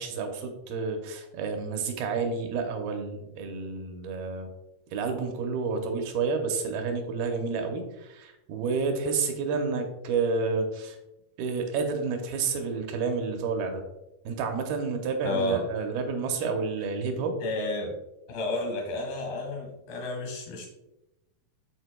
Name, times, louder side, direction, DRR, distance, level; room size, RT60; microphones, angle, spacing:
voice 1, 0.0-4.5 4.9-11.0 11.4-13.8 14.3-17.3, right 4 dB, 80° right, 4 dB, 2.6 m, -30 dB
voice 2, 15.2-15.7 17.4-18.0 18.3-20.7, left 2 dB, 75° left, 2 dB, 3.6 m, -31 dB
11.0 x 4.1 x 2.2 m, 0.94 s
omnidirectional pair, 4.4 m